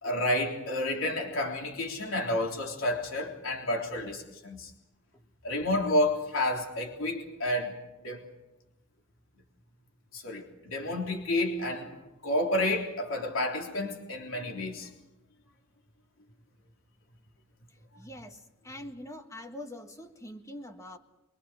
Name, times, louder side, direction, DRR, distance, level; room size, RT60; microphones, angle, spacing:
voice 1, 0.0-4.7 5.4-7.7 8.0-8.2 10.1-12.0 12.2-14.9, left 1 dB, 75° left, 3.7 m, -30 dB
voice 2, 18.0-21.0, left 1 dB, 15° left, 1.5 m, -44 dB
25.0 x 22.5 x 6.4 m
head